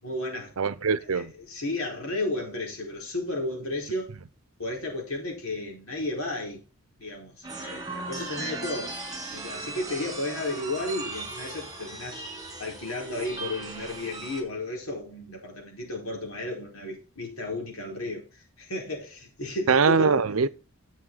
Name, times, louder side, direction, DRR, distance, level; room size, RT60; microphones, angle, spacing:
voice 1, 0.0-0.5 1.0-4.1 4.6-6.6 7.0-9.0 9.3-12.2 12.6-20.3, left 2 dB, 75° left, 4.8 m, -33 dB
voice 2, 0.6-1.3 19.7-20.5, right 5 dB, 75° right, 0.7 m, -22 dB
sound 1, 7.4-14.4, right 3 dB, 20° right, 3.0 m, -38 dB
10.5 x 7.4 x 4.1 m
head